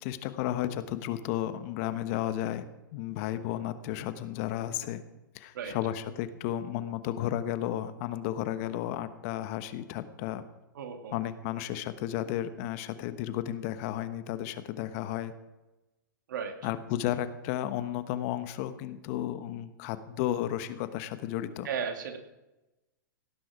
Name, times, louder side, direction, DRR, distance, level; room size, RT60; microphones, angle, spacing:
voice 1, 0.0-5.0 5.3-10.4 11.1-15.3 16.6-21.7, left 12 dB, 50° left, 11 dB, 1.2 m, -33 dB
voice 2, 10.7-11.2 16.3-16.6 21.6-22.2, right 6 dB, 70° right, 5 dB, 2.3 m, -35 dB
17.0 x 10.0 x 4.9 m, 1.0 s
hypercardioid pair, 110°, 11 cm